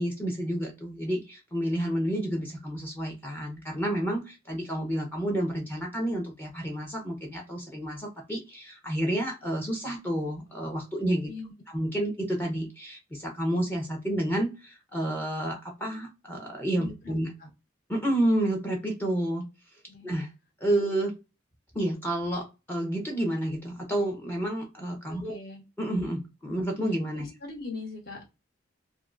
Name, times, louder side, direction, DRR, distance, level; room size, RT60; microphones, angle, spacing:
voice 1, 0.0-11.3 11.7-17.3 17.9-19.5 20.0-20.3 20.6-21.1 21.7-25.4 25.8-27.2, right 1 dB, 10° left, 0 dB, 0.6 m, -30 dB
voice 2, 16.8-17.1 17.4-17.5 19.9-20.1 25.1-25.6 27.1-28.3, left 3 dB, 50° left, -1 dB, 1.2 m, -41 dB
3.5 x 2.1 x 2.4 m, 0.27 s
head